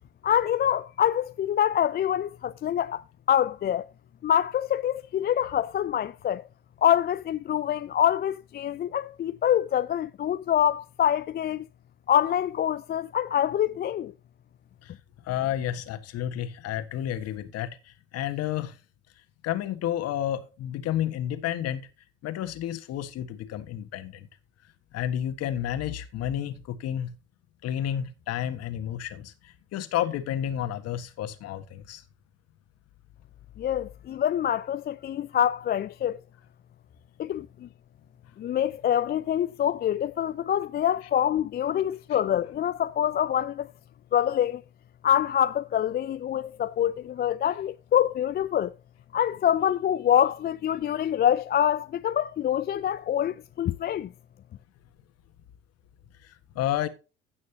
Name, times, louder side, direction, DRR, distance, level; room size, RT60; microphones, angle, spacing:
voice 1, 0.2-3.9 4.2-6.4 6.8-11.7 12.1-14.1 33.6-36.2 37.2-37.7 38.4-43.7 44.1-44.6 45.0-48.7 49.1-54.1, left 10 dB, 30° left, 0.5 m, -25 dB
voice 2, 15.2-18.8 19.4-21.9 22.2-24.3 24.9-27.1 27.6-32.0 42.1-42.2 56.2-56.9, left 11 dB, 55° left, 1.6 m, -31 dB
16.0 x 6.3 x 2.9 m
hypercardioid pair, 60°, 31 cm